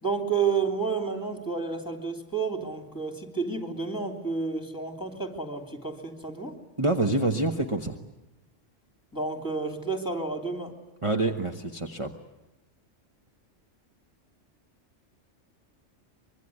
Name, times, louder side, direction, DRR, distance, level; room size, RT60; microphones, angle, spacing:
voice 1, 0.0-6.5 9.1-10.7, right 5 dB, 15° left, 6 dB, 3.0 m, -30 dB
voice 2, 6.8-8.0 11.0-12.2, right 2 dB, 25° right, 4 dB, 1.2 m, -26 dB
25.0 x 23.5 x 9.5 m, 0.95 s
omnidirectional pair, 1.3 m